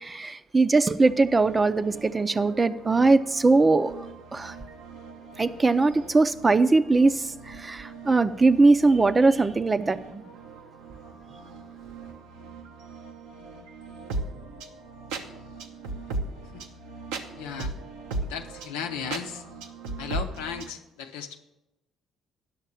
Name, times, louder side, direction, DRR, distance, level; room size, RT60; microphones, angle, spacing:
voice 1, 0.0-4.0 4.3-4.5 5.4-10.2, right 3 dB, 25° right, 12 dB, 0.6 m, -21 dB
sound 1, 1.0-20.7, right 3 dB, 85° right, 1.0 m, -39 dB
voice 2, 17.4-17.8 18.2-19.4 20.0-21.4, left 7 dB, 90° left, 4 dB, 0.7 m, -36 dB
10.0 x 6.6 x 7.2 m, 0.98 s
supercardioid pair, 60°, 0 cm